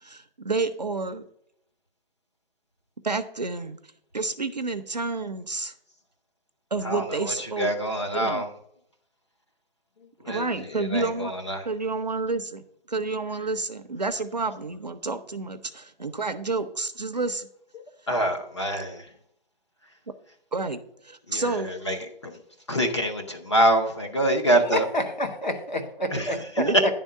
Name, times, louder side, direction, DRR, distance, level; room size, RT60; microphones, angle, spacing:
voice 1, 0.0-1.2 3.0-3.8 4.1-5.7 6.7-7.7 8.1-8.4 10.3-11.3 11.6-17.5 20.5-21.7 26.6-26.9, right 3 dB, 45° right, 8 dB, 0.5 m, -29 dB
voice 2, 6.8-8.5 10.3-10.4 10.8-11.6 18.1-19.0 21.3-22.0 22.2-22.4 22.7-24.8 26.1-26.3, right 1 dB, 30° left, 4 dB, 0.8 m, -25 dB
voice 3, 24.5-26.9, left 1 dB, 50° left, 5 dB, 1.2 m, -29 dB
10.5 x 3.6 x 6.4 m, 0.71 s
hypercardioid pair, 180°, 30 cm